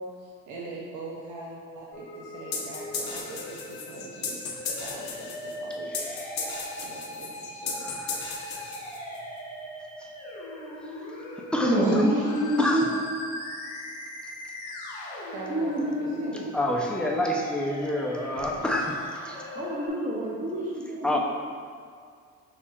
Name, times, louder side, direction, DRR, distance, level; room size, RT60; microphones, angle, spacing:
voice 1, 0.0-4.5 4.8-6.0 6.8-8.1 15.3-16.5, right 2 dB, 85° right, -3 dB, 0.6 m, -41 dB
Musical instrument, 1.9-19.9, equal, 85° left, 1.1 m, -40 dB
sound 1, 2.5-9.2, left 5 dB, 60° left, 0.7 m, -35 dB
voice 2, 7.8-8.7 11.5-12.0 12.6-12.9 16.5-19.0 19.2-19.4 21.0-21.2, left 1 dB, 5° left, -1 dB, 0.5 m, -28 dB
voice 3, 11.6-12.9 15.5-16.4 19.5-21.2, right 1 dB, 25° right, -6 dB, 0.9 m, -26 dB
5.8 x 3.1 x 2.3 m, 2.1 s
cardioid pair, 90°, 30 cm